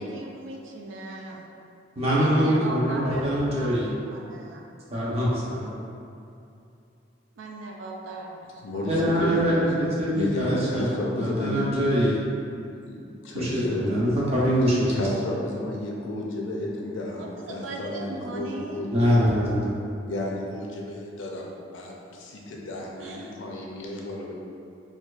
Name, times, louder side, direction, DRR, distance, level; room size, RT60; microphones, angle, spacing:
voice 1, 0.0-1.4 2.2-4.7 7.4-9.0 17.1-18.9 23.0-23.4, right 2 dB, 80° right, 0 dB, 0.4 m, -39 dB
voice 2, 2.0-3.9 4.9-5.7 8.9-12.2 13.3-15.1 18.9-19.7, equal, 30° right, -7 dB, 0.7 m, -23 dB
voice 3, 8.6-9.4 10.1-11.7 12.9-13.8 14.9-18.9 20.1-21.4 21.7-24.4, left 1 dB, 80° left, -2 dB, 0.5 m, -32 dB
4.3 x 2.3 x 2.4 m, 2.6 s
head